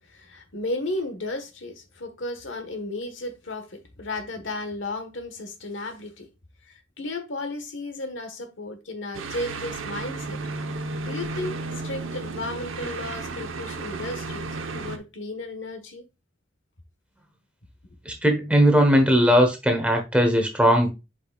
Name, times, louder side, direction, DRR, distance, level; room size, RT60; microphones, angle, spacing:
voice 1, 0.1-6.3 7.0-10.4 11.0-11.6 11.8-14.4 14.7-16.0, left 2 dB, 70° left, 1.3 m, -34 dB
sound 1, 9.1-15.0, right 3 dB, 85° right, 0.9 m, -33 dB
voice 2, 18.1-20.9, equal, 5° right, 1.1 m, -19 dB
8.0 x 5.0 x 2.4 m
head